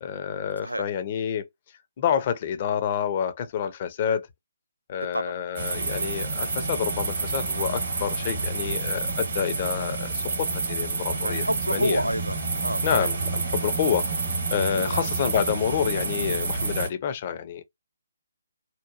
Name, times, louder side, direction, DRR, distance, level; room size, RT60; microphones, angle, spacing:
voice 1, 0.0-1.4 2.0-4.3 4.9-11.4 11.7-12.0 12.8-17.6, left 8 dB, 35° left, 0.4 m, -28 dB
voice 2, 5.0-5.4 11.1-13.1 14.8-15.0, equal, 90° right, 0.3 m, -30 dB
sound 1, 5.6-16.9, right 3 dB, 55° right, 0.9 m, -29 dB
2.9 x 2.2 x 2.4 m
figure-of-eight pair, 140°, 0 cm